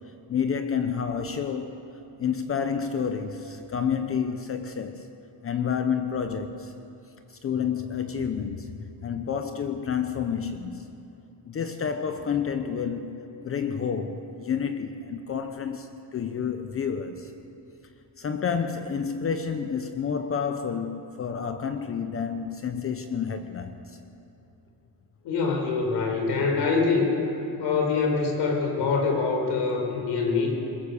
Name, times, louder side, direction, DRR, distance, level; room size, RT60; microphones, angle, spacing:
voice 1, 0.3-1.9 2.2-5.1 5.4-6.7 7.3-10.9 11.5-17.3 18.2-24.0, left 7 dB, 30° left, 8 dB, 0.8 m, -29 dB
voice 2, 25.2-27.2 27.6-30.5, left 4 dB, 70° left, 1 dB, 4.9 m, -24 dB
21.5 x 21.0 x 7.1 m, 2.8 s
cardioid pair, 165°, 43 cm